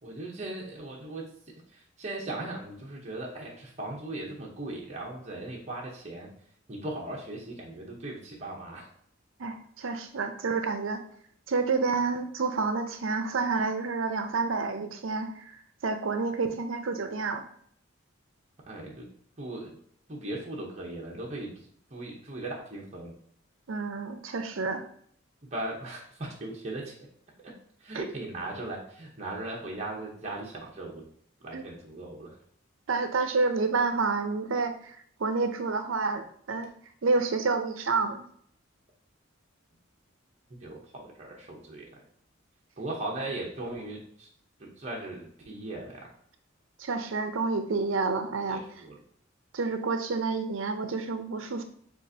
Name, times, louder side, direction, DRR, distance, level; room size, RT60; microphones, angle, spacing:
voice 1, 0.0-6.3 6.7-8.9 18.7-19.1 19.4-19.8 20.1-21.6 21.9-23.1 25.4-26.9 27.4-27.5 27.8-31.1 31.4-32.4 40.5-41.9 42.8-44.3 44.6-46.1 48.5-49.0, right 2 dB, 35° right, -2 dB, 0.8 m, -38 dB
voice 2, 9.4-11.0 11.5-17.4 23.7-24.8 27.9-28.0 31.5-31.6 32.9-36.7 37.0-38.2 43.2-43.3 46.8-48.8 49.5-51.6, right 4 dB, 75° right, 8 dB, 0.6 m, -29 dB
7.0 x 2.5 x 2.7 m, 0.63 s
head